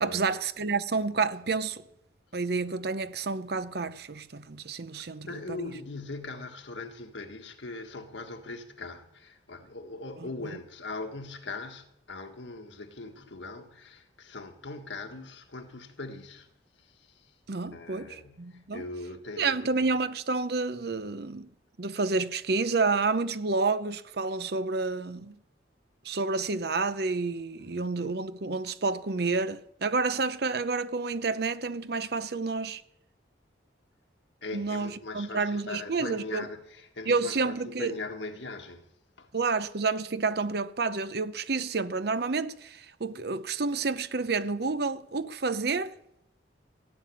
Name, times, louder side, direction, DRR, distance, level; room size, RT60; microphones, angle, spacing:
voice 1, 0.0-1.8 2.3-5.3 17.5-18.8 19.4-21.5 21.8-25.4 26.0-32.8 34.5-36.5 37.1-37.9 39.3-46.0, right 4 dB, 55° right, 0.7 m, -29 dB
voice 2, 5.0-16.5 16.8-17.4 17.7-20.0 27.6-27.9 34.4-38.9 39.2-39.3, left 3 dB, 75° left, 1.7 m, -41 dB
15.5 x 7.6 x 9.9 m
head